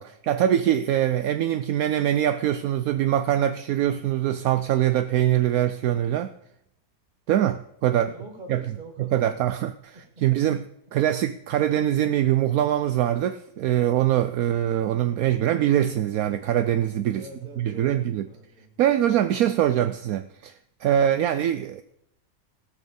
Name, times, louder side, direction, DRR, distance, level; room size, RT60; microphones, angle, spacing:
voice 1, 0.0-6.3 7.3-8.1 8.5-8.6 9.0-10.6 10.9-17.3 17.6-18.2 18.8-20.5 20.8-21.8, right 11 dB, 75° right, 1.0 m, -23 dB
voice 2, 7.9-9.6 9.9-10.2 17.1-18.8, right 1 dB, 30° right, 2.5 m, -44 dB
17.5 x 6.4 x 7.0 m
omnidirectional pair, 1.6 m